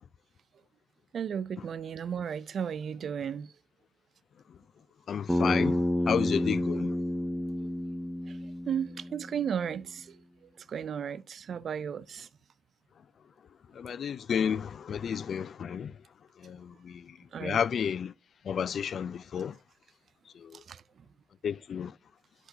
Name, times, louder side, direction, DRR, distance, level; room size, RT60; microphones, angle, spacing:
voice 1, 1.1-3.5 8.7-10.1 10.7-12.3 17.3-17.6 20.7-20.8, right 7 dB, 60° right, 0.4 m, -34 dB
voice 2, 5.1-6.9 13.8-15.9 16.4-18.1 18.5-19.6 20.4-20.6 21.4-21.9, left 7 dB, 60° left, 0.3 m, -32 dB
Bass guitar, 5.3-9.6, left 1 dB, 5° left, 0.8 m, -30 dB
10.0 x 5.8 x 2.7 m
cardioid pair, 110°, 0 cm